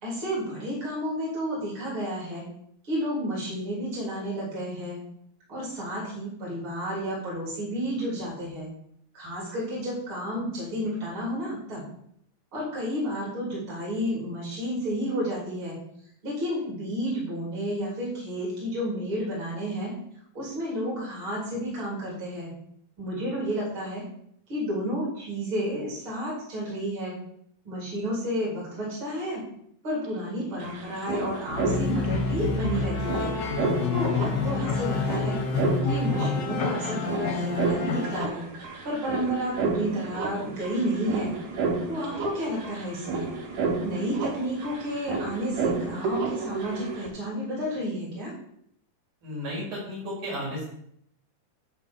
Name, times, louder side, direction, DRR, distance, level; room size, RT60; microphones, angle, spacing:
voice 1, 0.0-2.4 2.8-5.0 5.5-8.7 9.1-11.8 12.5-15.8 16.2-19.9 20.3-22.5 23.0-24.0 24.5-27.1 27.6-29.4 29.8-33.3 33.9-35.4 35.8-38.4 38.8-41.3 41.9-43.3 43.8-48.3, equal, 40° right, -5 dB, 4.4 m, -31 dB
sound 1, 30.0-30.1 30.3-47.1, right 3 dB, 90° right, 3.3 m, -32 dB
sound 2, 31.5-38.3, left 4 dB, 60° left, 1.1 m, -28 dB
voice 2, 49.2-50.7, equal, 70° right, -5 dB, 5.7 m, -33 dB
12.0 x 4.1 x 7.4 m, 0.70 s
omnidirectional pair, 3.6 m